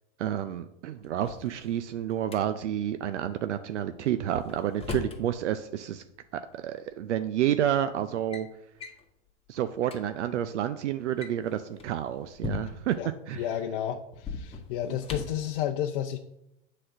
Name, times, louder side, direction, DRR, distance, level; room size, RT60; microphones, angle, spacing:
voice 1, 0.2-6.0 6.3-8.5 9.5-13.0 13.3-13.4 14.9-15.0, right 10 dB, 75° right, 11 dB, 0.6 m, -30 dB
Drawer open or close, 1.0-2.4 4.1-5.2 6.5-6.6 7.4-7.7 8.0-8.5 8.8-9.0 9.5-9.6 9.8-10.0 11.0-13.0 14.1-15.5, left 3 dB, 15° left, 1.4 m, -38 dB
voice 2, 13.3-16.2, left 10 dB, 50° left, 4 dB, 0.6 m, -31 dB
7.7 x 4.3 x 6.4 m, 0.85 s
hypercardioid pair, 100°, 35 cm